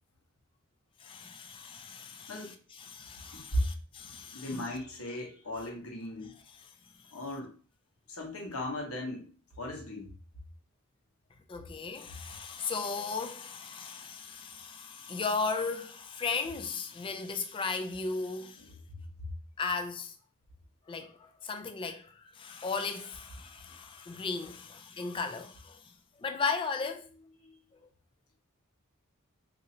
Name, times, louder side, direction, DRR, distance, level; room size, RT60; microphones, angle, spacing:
voice 1, 1.0-4.6 6.6-6.7 11.5-18.7 19.6-20.1 20.9-25.9 26.2-27.1, left 4 dB, 25° left, 0.3 m, -36 dB
voice 2, 3.3-3.6 4.3-6.3 7.1-7.5 8.1-9.3 9.6-10.1 18.9-19.3 27.4-27.6, left 1 dB, 75° left, 1.1 m, -36 dB
2.7 x 2.7 x 4.0 m
head